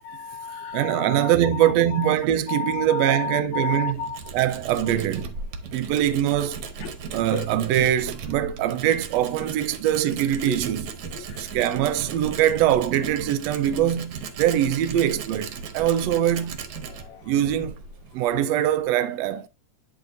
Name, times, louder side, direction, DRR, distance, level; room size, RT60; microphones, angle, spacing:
voice 1, 0.1-2.2 2.5-4.2 6.8-6.9 7.3-7.5 10.5-10.6 11.2-11.5 16.9-17.2, left 5 dB, 80° left, 1.7 m, -32 dB
voice 2, 0.7-4.0 4.3-5.3 5.7-6.6 7.1-16.6 17.3-17.8 18.1-19.5, right 11 dB, 80° right, 1.5 m, -23 dB
Tools, 3.4-18.8, right 5 dB, 65° right, 1.7 m, -37 dB
9.0 x 6.5 x 2.6 m
omnidirectional pair, 3.6 m